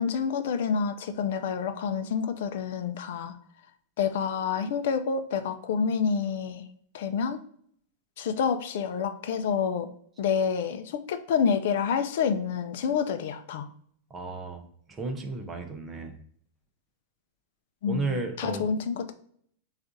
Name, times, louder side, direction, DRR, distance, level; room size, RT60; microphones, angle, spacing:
voice 1, 0.0-3.4 4.0-6.6 6.9-7.4 8.2-9.9 10.2-13.7 17.8-19.1, left 6 dB, 60° left, 9 dB, 0.5 m, -28 dB
voice 2, 14.1-14.7 15.0-16.2 17.9-18.7, right 3 dB, 15° right, 5 dB, 0.5 m, -33 dB
6.3 x 2.4 x 2.6 m, 0.62 s
supercardioid pair, 165°, 0 cm